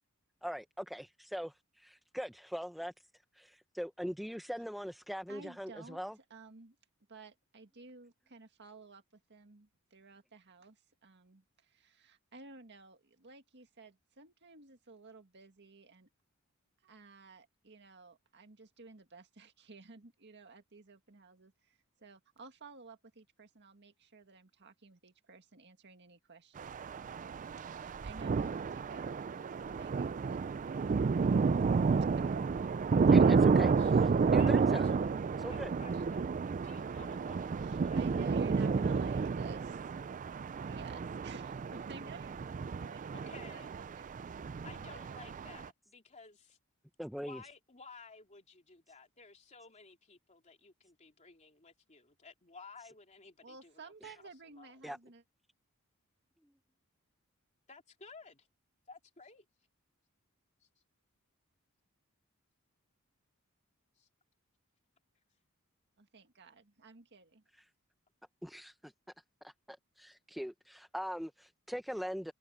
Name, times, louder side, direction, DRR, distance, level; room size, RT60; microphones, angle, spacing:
voice 1, 0.4-2.9 3.3-6.2 33.1-33.7 34.3-34.9 35.4-35.7 47.0-47.4 54.0-54.1 54.8-55.0 56.4-56.5 67.5-67.6 68.4-68.9 69.4-72.3, equal, ahead, 0.8 m, -41 dB
voice 2, 5.3-6.0 6.3-6.8 7.1-16.1 16.8-30.4 32.1-32.6 34.2-34.3 37.6-39.9 40.3-44.1 44.9-45.3 53.4-55.2 66.0-67.4, right 3 dB, 55° right, 2.0 m, -54 dB
sound 1, 26.6-45.7, right 5 dB, 35° right, 0.3 m, -31 dB
voice 3, 33.0-35.1 35.5-36.2 36.6-38.3 43.1-43.7 44.6-46.6 47.2-53.9 54.5-54.7 57.7-58.5 58.9-59.4 64.0-64.1, left 4 dB, 35° left, 3.1 m, -55 dB
head